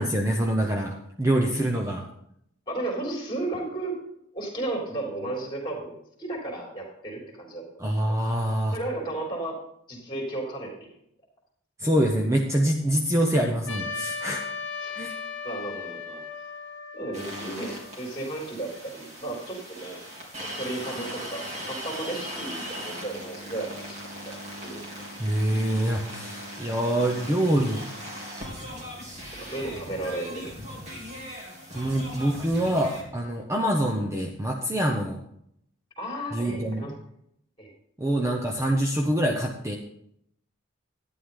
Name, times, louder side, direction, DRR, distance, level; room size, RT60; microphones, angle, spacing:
voice 1, 0.0-2.0 7.8-8.8 11.8-14.4 14.9-15.1 25.2-27.9 31.7-35.2 36.3-36.9 38.0-39.7, right 1 dB, 15° right, 1 dB, 0.8 m, -25 dB
voice 2, 2.7-4.0 4.3-7.7 8.7-9.6 9.9-10.9 14.8-14.9 15.4-16.2 16.9-20.0 20.4-24.0 24.3-24.4 24.6-24.8 29.4-30.5 36.0-36.9 37.6-37.7, right 2 dB, 20° left, 0 dB, 3.1 m, -34 dB
Trumpet, 13.7-18.1, left 5 dB, 60° left, 1.2 m, -36 dB
sound 1, 17.1-33.0, equal, 35° right, 3.1 m, -39 dB
12.0 x 9.7 x 3.8 m, 0.73 s
head